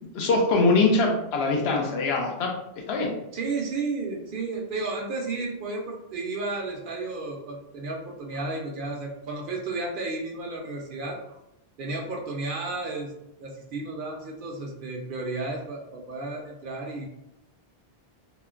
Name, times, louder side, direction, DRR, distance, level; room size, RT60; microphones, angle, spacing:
voice 1, 0.1-3.2, left 3 dB, 80° left, 2 dB, 0.8 m, -23 dB
voice 2, 3.3-11.4 11.8-13.1 13.4-17.1, right 3 dB, 60° right, 1 dB, 0.7 m, -33 dB
3.0 x 2.1 x 2.3 m, 0.83 s
omnidirectional pair, 1.0 m